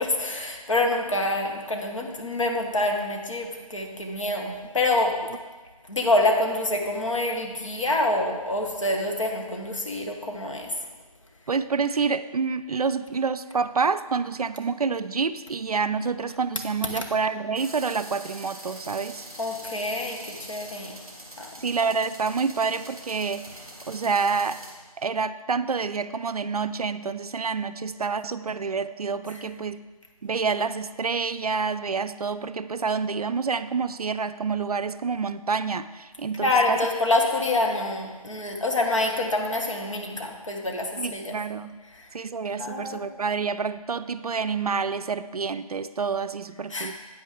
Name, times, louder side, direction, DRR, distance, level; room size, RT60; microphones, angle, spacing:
voice 1, 0.0-5.1 5.9-10.7 19.4-21.0 21.4-21.5 36.4-41.3 42.6-43.0 46.7-47.0, left 2 dB, 55° left, 1 dB, 1.5 m, -26 dB
voice 2, 11.5-19.3 21.6-24.6 25.0-29.8 30.2-36.8 41.0-41.8 42.1-47.0, right 5 dB, 75° right, 13 dB, 0.4 m, -28 dB
sound 1, 17.5-24.7, right 1 dB, 5° right, 0.6 m, -43 dB
9.2 x 8.7 x 3.7 m, 1.3 s
figure-of-eight pair, 170°, 19 cm